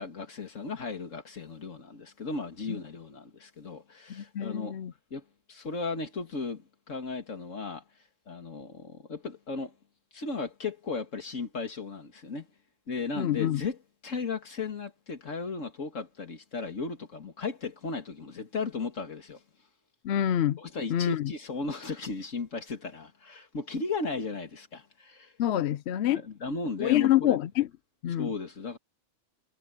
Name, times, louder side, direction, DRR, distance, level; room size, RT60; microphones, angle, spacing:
voice 1, 0.0-4.8 5.1-7.8 8.3-9.7 10.1-12.5 12.9-19.4 20.6-25.3 26.1-27.4 28.2-28.8, left 4 dB, 85° left, 2.4 m, -36 dB
voice 2, 4.1-4.9 13.2-13.6 20.0-20.6 20.9-21.3 25.4-26.2 26.8-27.7 28.0-28.3, left 12 dB, 65° left, 0.8 m, -26 dB
omnidirectional pair, 1.3 m